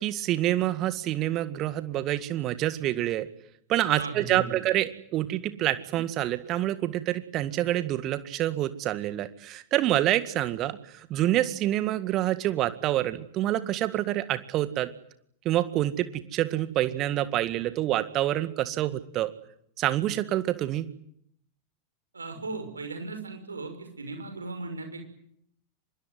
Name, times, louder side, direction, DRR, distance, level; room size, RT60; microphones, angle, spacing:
voice 1, 0.0-3.3 3.7-14.9 15.5-19.3 19.8-20.9, right 14 dB, 35° right, 13 dB, 1.9 m, -27 dB
voice 2, 3.9-4.6 22.1-25.0, right 3 dB, 75° right, 6 dB, 6.1 m, -37 dB
25.0 x 22.5 x 9.5 m, 0.70 s
figure-of-eight pair, 90°, 0 cm